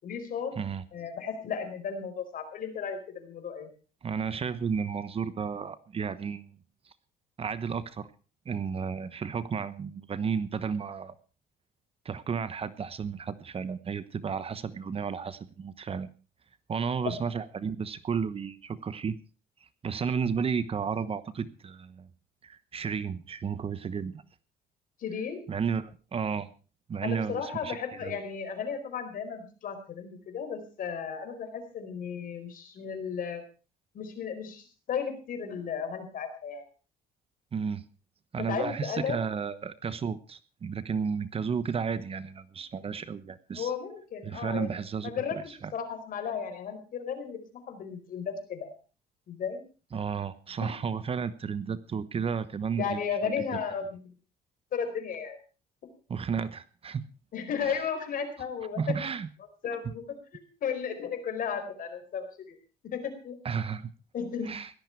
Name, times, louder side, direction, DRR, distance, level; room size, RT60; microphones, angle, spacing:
voice 1, 0.0-0.5 0.9-3.7 17.0-17.2 25.0-25.4 27.0-33.4 33.9-36.6 38.4-39.2 43.5-44.7 45.0-48.7 49.3-49.6 50.6-50.7 52.8-54.0 54.7-55.4 57.3-58.9 59.6-60.0 60.3-62.6 62.8-63.4 64.1-64.5, left 7 dB, 55° left, 7 dB, 4.6 m, -34 dB
voice 2, 4.0-6.6 7.4-8.1 8.4-11.1 12.0-16.1 16.7-19.2 19.8-22.1 22.4-24.2 25.5-26.5 26.9-28.2 37.5-37.8 38.3-43.7 44.2-45.1 45.6-45.7 49.9-53.3 56.1-57.0 57.6-57.8 58.8-59.3 59.8-59.9 63.4-63.9 64.5-64.7, right 6 dB, 35° right, 14 dB, 1.1 m, -33 dB
17.0 x 12.5 x 4.6 m, 0.36 s
cardioid pair, 110°, 17 cm